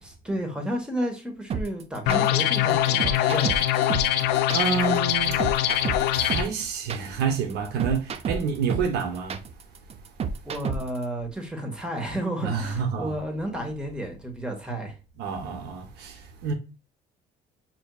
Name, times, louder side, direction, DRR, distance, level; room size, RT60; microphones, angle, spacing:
voice 1, 0.0-3.6 10.4-14.9, right 1 dB, 5° right, 1.1 m, -32 dB
sound 1, 1.5-11.0, right 5 dB, 35° right, 0.4 m, -31 dB
sound 2, 2.1-6.4, left 11 dB, 80° left, 0.4 m, -23 dB
voice 2, 4.5-5.5 6.1-9.4 12.4-13.1 15.2-16.5, right 6 dB, 80° right, 0.7 m, -28 dB
5.8 x 2.6 x 2.2 m
cardioid pair, 110°, 17 cm